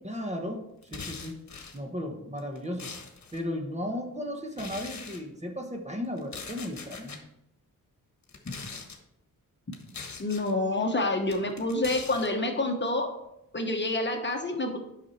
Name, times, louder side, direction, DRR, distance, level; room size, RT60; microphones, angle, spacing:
voice 1, 0.0-0.6 0.9-1.4 1.7-3.0 3.3-7.2, left 1 dB, 20° right, 3 dB, 1.1 m, -35 dB
sound 1, 0.8-1.8 2.4-3.4 4.5-5.2 6.2-7.2 8.2-9.0 9.7-10.5 11.3-12.3, left 5 dB, 50° left, 1.4 m, -42 dB
voice 2, 10.2-13.1 13.5-14.8, left 2 dB, 30° left, 3 dB, 1.1 m, -28 dB
9.7 x 6.0 x 4.2 m, 0.83 s
wide cardioid pair, 125°, 35 cm